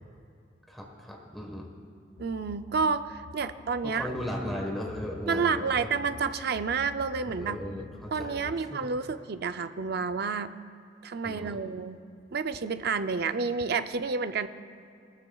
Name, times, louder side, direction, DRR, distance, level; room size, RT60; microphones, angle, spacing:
voice 1, 0.7-1.7 3.8-5.9 7.3-8.8 11.2-11.6, left 1 dB, ahead, -2 dB, 1.3 m, -37 dB
sound 1, 2.2-8.6, left 3 dB, 70° left, 0.4 m, -48 dB
voice 2, 2.2-4.1 5.3-7.6 8.1-10.5 11.0-12.0 12.3-14.5, right 5 dB, 55° right, 10 dB, 0.5 m, -30 dB
19.5 x 13.5 x 2.3 m, 2.5 s
head